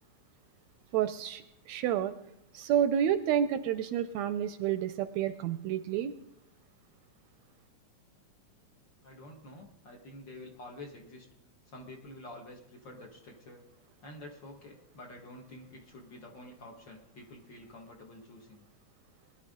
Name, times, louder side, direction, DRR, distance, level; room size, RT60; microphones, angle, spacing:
voice 1, 0.9-2.1 2.5-6.1, right 10 dB, 80° right, 11 dB, 1.7 m, -29 dB
voice 2, 9.0-11.3 11.7-13.6 14.0-18.6, left 1 dB, 45° left, 1 dB, 1.8 m, -49 dB
21.0 x 11.0 x 3.7 m, 0.82 s
omnidirectional pair, 3.4 m